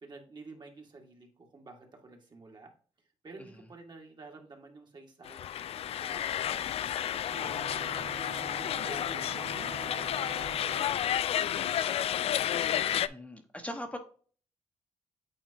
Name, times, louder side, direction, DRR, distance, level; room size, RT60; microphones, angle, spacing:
voice 1, 0.0-2.7 3.2-5.5 6.0-7.6 7.9-8.4 8.7-11.0 11.5-12.4, right 3 dB, 40° right, 2 dB, 1.9 m, -51 dB
sound 1, 5.3-13.1, left 10 dB, 65° left, 0.4 m, -31 dB
sound 2, 7.3-12.4, right 8 dB, 65° right, 0.6 m, -47 dB
voice 2, 13.1-14.0, left 1 dB, 10° left, 4 dB, 1.0 m, -40 dB
9.1 x 4.1 x 2.8 m, 0.42 s
cardioid pair, 100°, 11 cm